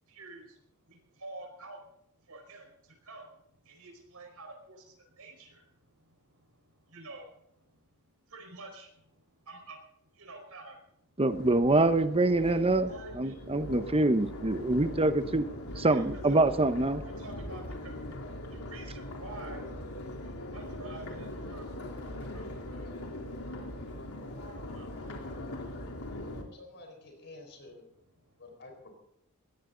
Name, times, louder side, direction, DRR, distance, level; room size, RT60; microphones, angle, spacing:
voice 1, 0.1-1.8 2.3-3.3 3.6-7.9 8.3-9.8 10.1-10.8 11.1-11.2 12.8-13.3 15.9-16.0 17.0-18.1 18.5-20.0 20.5-21.7 22.2-26.6 28.2-28.4, right 2 dB, 80° right, 2 dB, 5.0 m, -50 dB
voice 2, 11.2-12.9 13.1-15.4 15.8-17.0, right 2 dB, 25° right, 10 dB, 1.0 m, -25 dB
Crowd, 11.3-26.4, left 1 dB, 80° left, 3.5 m, -41 dB
voice 3, 26.5-27.8 28.4-28.9, left 2 dB, 55° left, 4 dB, 4.3 m, -50 dB
20.5 x 17.0 x 3.9 m, 0.73 s
head